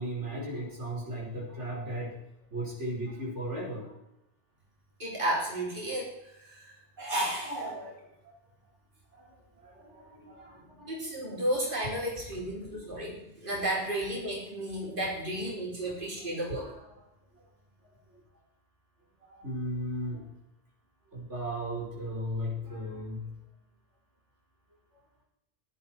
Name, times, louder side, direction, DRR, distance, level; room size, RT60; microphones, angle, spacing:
voice 1, 0.0-2.2 2.5-3.9 9.1-9.3 9.6-10.9 12.7-12.8 16.5-17.0 19.3-20.3 21.1-23.4, equal, 85° right, -4 dB, 5.3 m, -36 dB
voice 2, 5.0-8.0 10.9-16.7, right 1 dB, 45° right, -4 dB, 4.4 m, -33 dB
18.0 x 11.5 x 4.5 m, 0.83 s
omnidirectional pair, 1.2 m